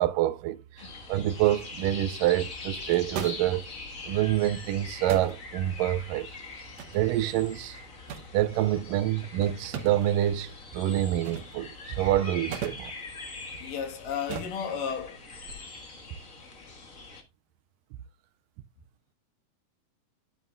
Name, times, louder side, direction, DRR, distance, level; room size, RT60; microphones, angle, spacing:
voice 1, 0.0-3.7 4.0-6.3 6.9-7.8 8.3-12.9, right 13 dB, 80° right, 2.2 m, -27 dB
sound 1, 0.8-17.2, left 3 dB, 45° left, 1.0 m, -43 dB
sound 2, 1.5-15.5, right 8 dB, 60° right, 2.0 m, -44 dB
voice 2, 13.6-15.2, left 7 dB, 75° left, 3.0 m, -33 dB
11.0 x 8.8 x 2.3 m
omnidirectional pair, 4.0 m